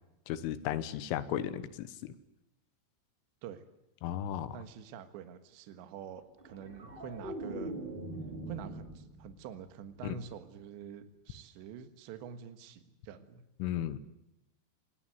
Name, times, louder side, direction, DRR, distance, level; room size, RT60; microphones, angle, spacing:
voice 1, 0.3-2.1 4.0-4.6 10.0-10.2 13.6-14.0, left 11 dB, 85° left, 13 dB, 3.6 m, -35 dB
voice 2, 4.5-7.8 8.5-13.4, right 7 dB, 70° right, 8 dB, 3.5 m, -46 dB
sound 1, 6.4-9.6 9.9-10.3, right 1 dB, 20° right, 1.7 m, -42 dB
25.5 x 19.5 x 9.3 m, 0.92 s
omnidirectional pair, 5.7 m